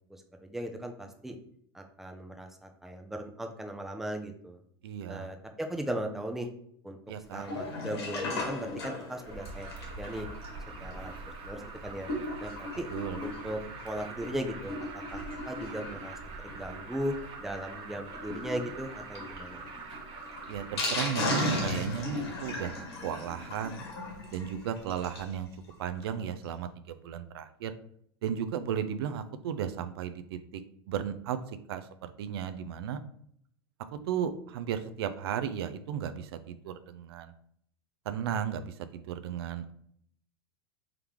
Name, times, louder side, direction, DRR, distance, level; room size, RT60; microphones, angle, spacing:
voice 1, 0.1-1.4 1.7-4.6 5.1-6.5 6.8-7.0 7.3-10.3 10.8-11.1 11.4-12.1 12.4-12.9 13.2-15.2 15.5-16.1 16.4-17.1 17.4-19.6, right 1 dB, ahead, 4 dB, 0.5 m, -37 dB
voice 2, 4.8-5.3 7.1-7.4 12.9-13.2 20.5-22.7 23.0-23.8 24.3-25.5 25.8-27.7 28.2-30.6 30.9-33.0 33.9-37.3 38.1-39.7, right 8 dB, 75° right, 10 dB, 0.4 m, -35 dB
Sink (filling or washing), 7.3-25.3 25.7-25.8 26.0-26.1 26.4-26.5, left 2 dB, 85° left, 1.5 m, -37 dB
Alarm, 9.3-20.8, right 4 dB, 40° right, 0.8 m, -44 dB
3.6 x 3.5 x 3.0 m, 0.68 s
hypercardioid pair, 115°, 13 cm